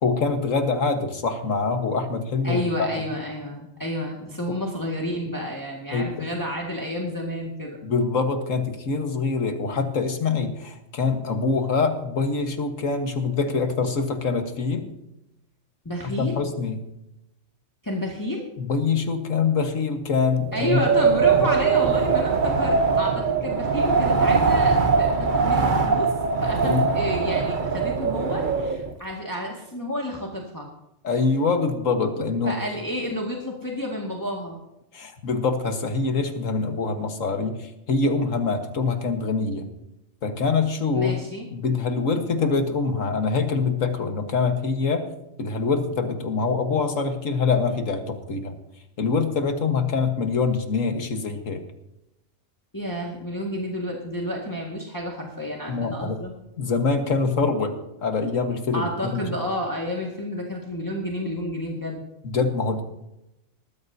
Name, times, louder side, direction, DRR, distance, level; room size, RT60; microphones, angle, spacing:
voice 1, 0.0-2.9 4.5-4.6 5.9-6.0 7.8-14.9 16.2-16.8 18.6-20.9 26.6-26.9 31.0-32.6 34.9-37.6 37.9-39.7 40.2-41.2 41.5-45.1 45.4-48.5 49.0-51.6 55.7-56.2 56.6-58.8 62.2-62.8, left 4 dB, 85° left, 5 dB, 1.8 m, -24 dB
voice 2, 2.4-7.8 15.9-16.4 17.8-18.5 20.5-26.1 26.4-30.7 32.5-34.6 40.9-41.5 52.7-56.3 58.7-62.1, equal, 15° left, -2 dB, 1.9 m, -30 dB
Wind, 20.5-28.9, right 5 dB, 45° right, 1.1 m, -21 dB
19.5 x 13.5 x 2.8 m, 0.90 s
omnidirectional pair, 1.3 m